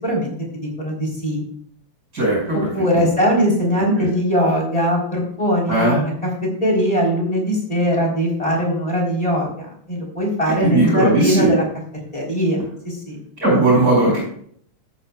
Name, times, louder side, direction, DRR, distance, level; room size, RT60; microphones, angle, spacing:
voice 1, 0.0-1.4 2.7-6.1 6.4-11.6 12.1-12.6 12.8-13.2, equal, 10° left, -2 dB, 3.7 m, -20 dB
voice 2, 2.1-2.6 2.9-3.1 4.0-4.1 5.7-6.0 10.6-11.5 13.4-14.2, right 2 dB, 30° right, -4 dB, 6.0 m, -17 dB
13.5 x 12.0 x 2.4 m, 0.63 s
omnidirectional pair, 3.5 m